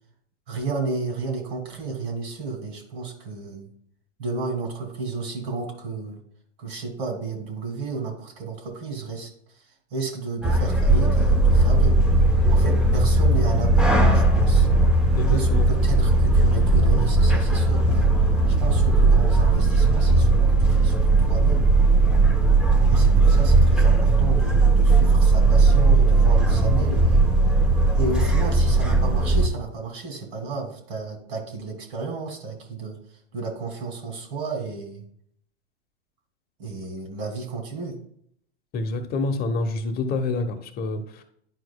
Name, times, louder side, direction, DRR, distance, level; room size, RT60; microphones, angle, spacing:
voice 1, 0.5-3.7 4.2-6.2 6.6-9.3 9.9-11.9 12.5-14.7 15.3-18.1 18.5-21.7 22.9-27.3 27.9-33.0 33.3-35.0 36.6-38.0, right 4 dB, 60° right, 3 dB, 2.6 m, -32 dB
sound 1, 10.4-29.5, right 2 dB, 5° right, 0.9 m, -18 dB
voice 2, 15.2-15.7 38.7-41.2, left 3 dB, 30° left, 7 dB, 1.0 m, -27 dB
10.5 x 4.6 x 2.3 m, 0.66 s
hypercardioid pair, 115°, 34 cm